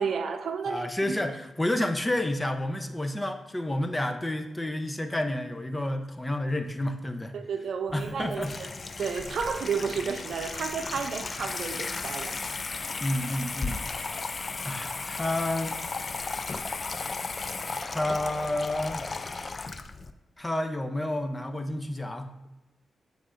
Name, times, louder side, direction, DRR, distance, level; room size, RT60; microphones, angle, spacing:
voice 1, 0.0-1.2 7.3-8.7 9.0-12.4, right 6 dB, 70° right, 7 dB, 0.6 m, -32 dB
voice 2, 0.7-7.3 7.9-8.5 13.0-13.8 14.6-15.8 17.8-19.8 20.4-22.3, left 1 dB, 20° left, 7 dB, 0.7 m, -30 dB
Water tap faucet / Sink (filling or washing), 7.9-20.1, left 4 dB, 45° left, 0.4 m, -35 dB
11.0 x 3.6 x 2.5 m, 1.0 s
supercardioid pair, 45°, 0 cm